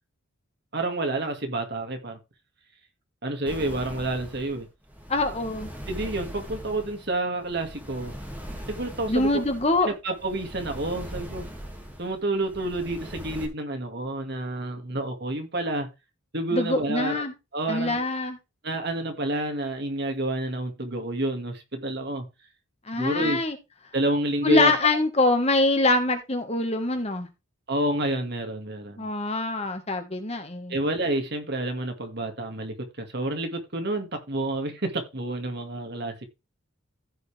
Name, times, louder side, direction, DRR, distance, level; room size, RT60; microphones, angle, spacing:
voice 1, 0.7-2.2 3.2-4.7 5.9-8.1 8.7-9.3 9.8-11.5 12.0-15.9 16.3-17.2 17.5-18.0 18.6-22.3 23.0-23.4 23.9-24.7 27.7-29.1 30.7-36.3, right 1 dB, 55° right, 2.1 m, -29 dB
sound 1, 3.5-13.5, equal, 10° right, 2.2 m, -40 dB
voice 2, 5.1-5.7 9.1-9.9 16.5-17.3 17.7-18.4 22.9-23.6 24.4-27.3 29.0-30.8, left 2 dB, 30° left, 1.6 m, -24 dB
15.0 x 5.4 x 3.4 m
head